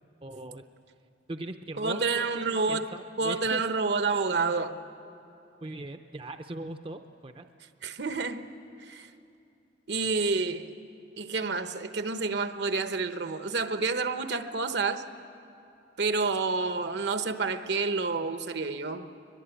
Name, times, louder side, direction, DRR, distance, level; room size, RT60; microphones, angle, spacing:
voice 1, 0.2-0.6 1.3-3.6 5.6-7.5, right 2 dB, 30° right, 7 dB, 0.6 m, -39 dB
voice 2, 1.8-2.9 3.2-4.8 7.8-8.4 8.8-9.1 9.9-10.7 11.2-15.0 16.0-19.1, right 4 dB, 70° right, 9 dB, 1.0 m, -29 dB
22.5 x 22.0 x 9.0 m, 2.7 s
head